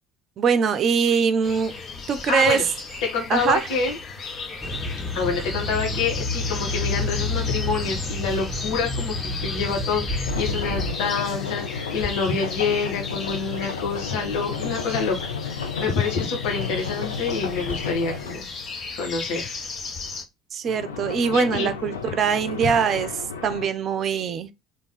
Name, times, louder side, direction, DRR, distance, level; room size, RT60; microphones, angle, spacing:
voice 1, 0.4-1.7 2.1-2.6 3.3-3.6 20.5-24.5, right 6 dB, 45° right, 0.6 m, -22 dB
sound 1, 1.4-20.2, left 4 dB, 45° left, 1.1 m, -35 dB
voice 2, 2.3-2.6 3.0-4.0 5.1-18.5 18.9-19.5 21.3-21.7 22.6-22.8, left 4 dB, 60° left, 2.1 m, -27 dB
sound 2, 4.6-10.9, left 2 dB, ahead, 2.2 m, -29 dB
sound 3, 10.2-18.4 20.6-23.7, left 6 dB, 75° left, 0.5 m, -32 dB
3.5 x 3.1 x 4.1 m
figure-of-eight pair, 60°, 0 cm